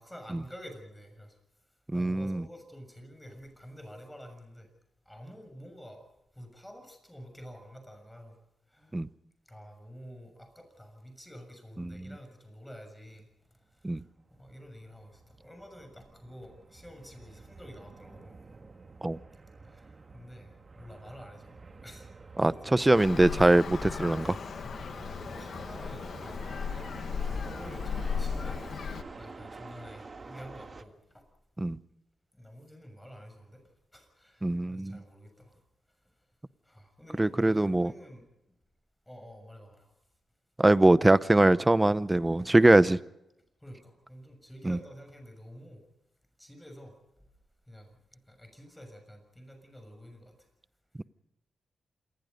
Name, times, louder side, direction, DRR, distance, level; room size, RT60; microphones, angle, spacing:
voice 1, 0.0-1.4 1.9-4.7 5.0-6.0 6.3-8.4 8.7-9.0 9.5-13.3 13.7-18.4 19.6-21.5 21.8-22.1 22.4-22.7 24.6-26.5 27.2-28.9 29.2-31.3 32.3-33.6 33.9-35.6 36.6-38.2 39.1-39.9 43.6-45.8 46.4-47.0 47.7-50.5, equal, 5° left, 6 dB, 6.7 m, -49 dB
voice 2, 1.9-2.4 8.9-9.1 11.8-12.0 13.8-14.0 19.0-19.2 22.4-24.4 31.6-31.8 34.4-35.0 37.2-37.9 40.6-43.0 44.6-44.8, right 2 dB, 15° right, 17 dB, 0.7 m, -22 dB
sound 1, 13.7-30.8, right 3 dB, 35° right, 1.7 m, -48 dB
Traffic noise roadway noise, 22.9-29.0, left 6 dB, 65° left, 1.7 m, -36 dB
27.0 x 20.5 x 5.3 m, 0.88 s
cardioid pair, 105°, 0 cm